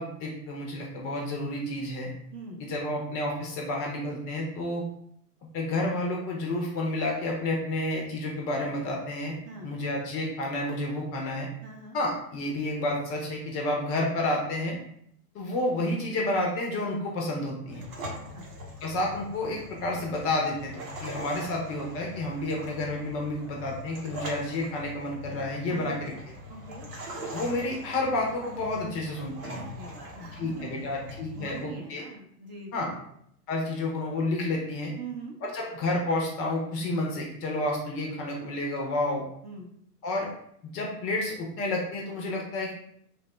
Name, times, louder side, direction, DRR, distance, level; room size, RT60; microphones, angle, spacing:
voice 1, 0.0-2.1 2.6-4.8 5.5-9.4 9.6-11.5 11.9-14.8 15.3-17.8 18.8-20.7 21.0-26.1 27.3-29.7 30.3-32.0 32.7-32.9 33.5-34.9 35.4-39.2 40.0-40.3 40.6-42.7, left 1 dB, 30° left, 0 dB, 0.5 m, -30 dB
voice 2, 2.3-2.6 9.4-9.7 11.6-12.0 18.1-18.5 25.7-26.1 26.5-26.9 29.5-30.8 31.4-33.1 35.0-35.4 39.4-39.7, right 3 dB, 35° right, -1 dB, 0.7 m, -43 dB
sound 1, 17.7-31.6, left 1 dB, 60° right, 1.1 m, -42 dB
3.1 x 2.1 x 2.9 m, 0.69 s
hypercardioid pair, 100°, 47 cm